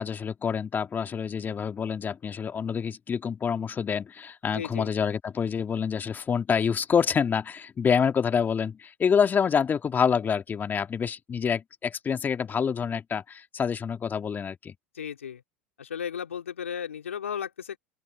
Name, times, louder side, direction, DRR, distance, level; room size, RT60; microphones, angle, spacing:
voice 1, 0.0-14.7, left 7 dB, 25° left, 2.0 m, -27 dB
voice 2, 4.5-4.9 14.9-15.4 15.8-17.8, left 8 dB, 85° left, 3.5 m, -35 dB
open air
hypercardioid pair, 85°, 7 cm